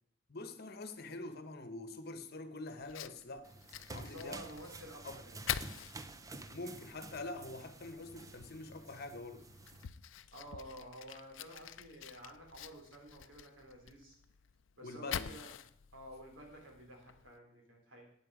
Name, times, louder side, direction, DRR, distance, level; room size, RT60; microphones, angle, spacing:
voice 1, 0.3-3.5 3.9-4.4 5.0-5.2 6.5-9.5 14.8-15.3, left 2 dB, 55° left, 9 dB, 1.2 m, -45 dB
Fire, 2.8-17.4, left 9 dB, 70° left, 0.5 m, -47 dB
sound 1, 3.4-9.9, right 2 dB, 15° right, 0.6 m, -51 dB
voice 2, 4.0-5.4 10.3-14.2 14.8-15.6 15.9-18.1, equal, 75° right, 1 dB, 3.9 m, -51 dB
13.5 x 9.1 x 4.9 m, 0.66 s
head